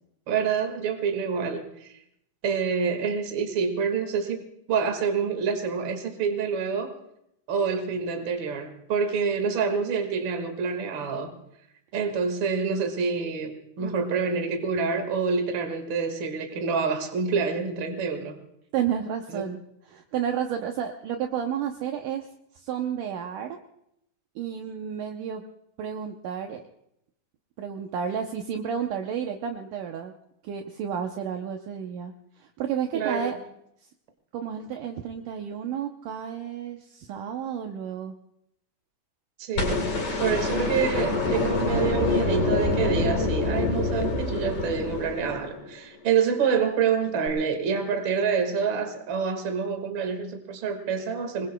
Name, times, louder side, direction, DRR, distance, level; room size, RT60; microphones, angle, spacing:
voice 1, 0.3-2.0 2.4-6.9 7.5-11.3 11.9-18.4 19.3-19.4 32.9-33.4 39.4-39.9 40.2-51.5, right 6 dB, 45° right, 5 dB, 1.6 m, -27 dB
voice 2, 18.7-19.6 19.9-22.3 22.5-23.6 24.4-25.4 25.8-26.6 27.6-30.1 30.4-33.4 34.3-38.1, right 8 dB, 85° right, 3 dB, 1.8 m, -31 dB
sound 1, 39.6-45.7 47.3-47.4, left 3 dB, 55° left, 4.6 m, -26 dB
26.5 x 21.0 x 2.2 m, 0.78 s
omnidirectional pair, 4.7 m